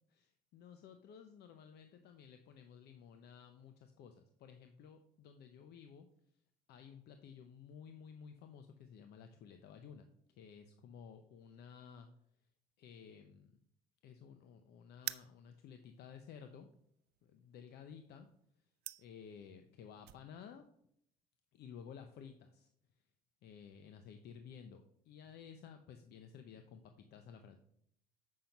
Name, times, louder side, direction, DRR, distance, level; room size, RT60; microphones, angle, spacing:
voice 1, 0.1-6.1 6.7-12.1 12.8-13.6 14.0-16.7 17.2-18.3 19.0-20.7 21.5-22.7 23.4-27.6, left 7 dB, 70° left, 7 dB, 0.7 m, -54 dB
sound 1, 15.0-20.2, right 16 dB, 75° right, 0.4 m, -48 dB
7.6 x 5.8 x 5.2 m, 0.71 s
cardioid pair, 110°, 17 cm